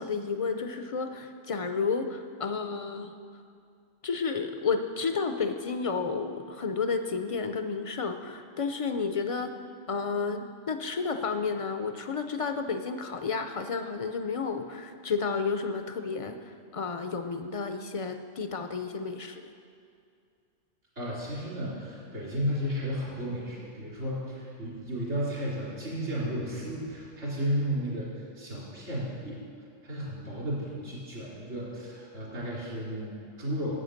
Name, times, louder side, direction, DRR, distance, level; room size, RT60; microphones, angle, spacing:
voice 1, 0.0-3.1 4.0-9.5 9.9-19.4, left 5 dB, 55° left, 7 dB, 0.4 m, -31 dB
voice 2, 21.0-29.4 29.8-33.8, equal, 70° right, -7 dB, 4.1 m, -33 dB
11.0 x 8.5 x 6.4 m, 2.4 s
omnidirectional pair, 1.2 m